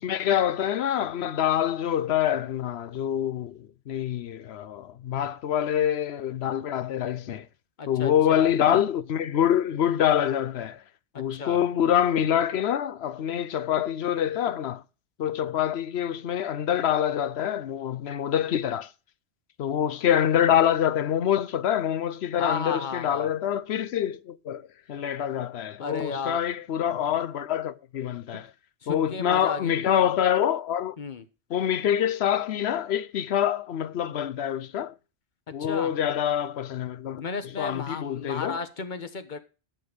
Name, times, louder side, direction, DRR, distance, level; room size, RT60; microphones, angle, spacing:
voice 1, 0.0-7.5 7.9-10.8 11.2-14.8 15.2-18.9 19.6-28.5 28.9-31.0 31.5-34.9 35.5-37.2 37.6-38.6, left 10 dB, 70° left, 0.9 m, -26 dB
voice 2, 7.8-8.5 11.1-11.6 22.4-23.3 25.8-26.4 28.8-29.9 31.0-31.2 35.6-35.9 37.2-39.4, left 5 dB, 45° left, 1.3 m, -34 dB
13.0 x 6.4 x 5.1 m
omnidirectional pair, 1.1 m